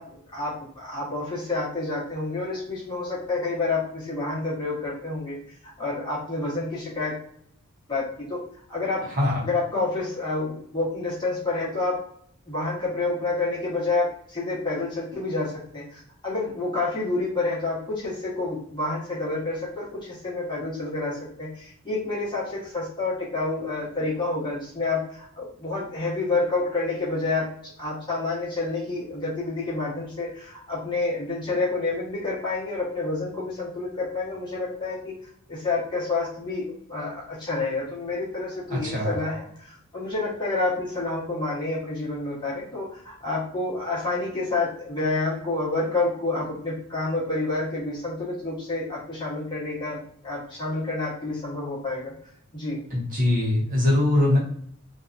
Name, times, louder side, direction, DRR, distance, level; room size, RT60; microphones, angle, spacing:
voice 1, 0.0-5.3 5.6-7.1 7.9-8.4 8.7-9.0 9.4-12.0 12.5-27.5 27.8-35.1 35.5-52.1 52.5-52.8, left 3 dB, 20° left, -7 dB, 1.0 m, -29 dB
voice 2, 9.1-9.5 38.7-39.1 52.9-54.4, left 1 dB, 35° right, -5 dB, 0.8 m, -22 dB
2.6 x 2.3 x 2.5 m, 0.64 s
head